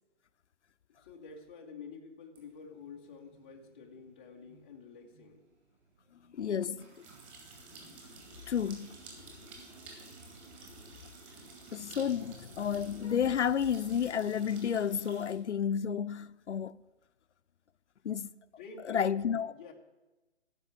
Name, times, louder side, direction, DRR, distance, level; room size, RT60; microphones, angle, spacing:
voice 1, 0.9-5.5 18.6-19.1 19.4-19.7, left 5 dB, 10° left, 0.5 m, -49 dB
sound 1, 2.4-15.3, right 3 dB, 25° right, 2.6 m, -53 dB
voice 2, 6.3-7.1 7.8-8.0 8.5-8.9 11.7-16.8 18.0-18.3 18.9-19.5, left 8 dB, 70° left, 0.6 m, -31 dB
12.5 x 5.4 x 9.2 m
figure-of-eight pair, 140°, 35 cm